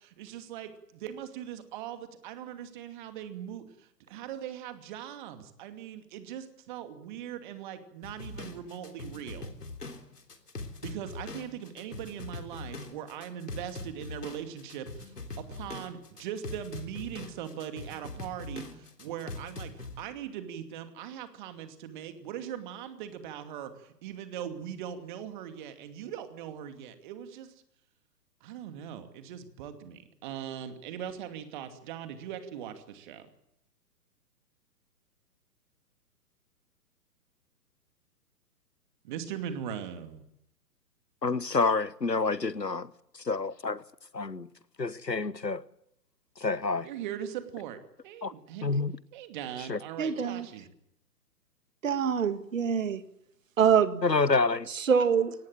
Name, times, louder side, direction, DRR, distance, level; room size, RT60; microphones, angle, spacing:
voice 1, 0.0-9.5 10.8-27.5 28.4-33.3 39.0-40.2 46.8-47.8 48.0-48.7 49.1-50.7, right 9 dB, 30° right, 2.6 m, -40 dB
sound 1, 8.0-20.0, left 2 dB, 75° left, 3.4 m, -42 dB
voice 2, 41.2-43.8 44.1-44.5 44.8-45.6 46.4-46.9 48.2-48.3 48.6-49.0 49.7-49.8 54.0-54.7, left 4 dB, 90° left, 1.1 m, -28 dB
voice 3, 50.0-50.5 51.8-53.0 53.6-54.0 54.8-55.4, right 7 dB, 50° right, 2.0 m, -25 dB
23.5 x 18.5 x 8.9 m
figure-of-eight pair, 125°, 48 cm